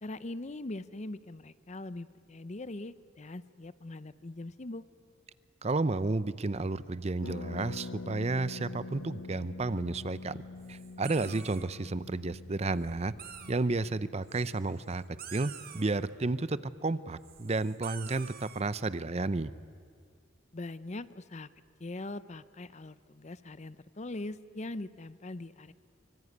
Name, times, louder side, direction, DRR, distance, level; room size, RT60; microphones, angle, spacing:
voice 1, 0.0-4.8 20.5-21.5 21.8-25.7, left 2 dB, 35° left, 15 dB, 0.6 m, -41 dB
voice 2, 5.6-10.4 10.7-13.1 13.5-15.0 15.3-19.5, right 3 dB, 30° right, 16 dB, 0.6 m, -32 dB
sound 1, 6.6-13.5, right 1 dB, 70° right, 2.1 m, -61 dB
Harp, 7.2-16.8 17.1-17.2 17.3-17.7, left 3 dB, 75° left, 1.0 m, -46 dB
sound 2, 10.6-11.6 12.8-12.9 13.2-13.6 14.3-14.9 15.2-15.8 17.2-18.6, right 9 dB, 50° right, 1.9 m, -47 dB
25.0 x 24.5 x 9.6 m, 2.2 s
head